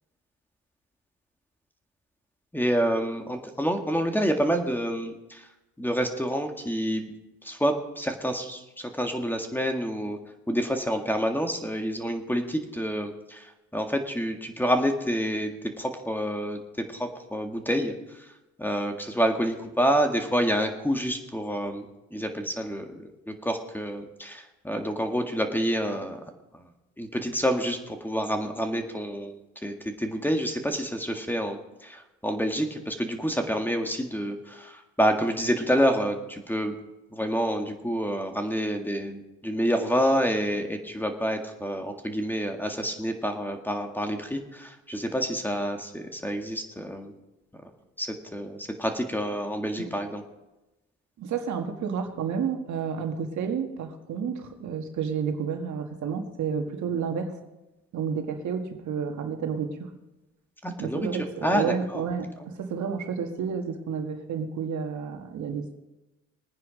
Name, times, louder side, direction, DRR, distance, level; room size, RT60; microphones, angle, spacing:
voice 1, 2.5-5.5 5.8-7.1 7.4-10.2 10.5-15.5 15.8-18.3 18.6-26.2 26.5-26.6 27.0-36.7 37.1-47.1 48.0-50.2 60.6-61.1 61.4-61.7 61.9-62.0, equal, 5° left, 5 dB, 1.8 m, -28 dB
voice 2, 51.2-57.3 57.9-59.9 60.8-65.8, right 6 dB, 70° right, 4 dB, 1.8 m, -31 dB
20.5 x 9.6 x 5.1 m, 1.0 s
cardioid pair, 90°, 30 cm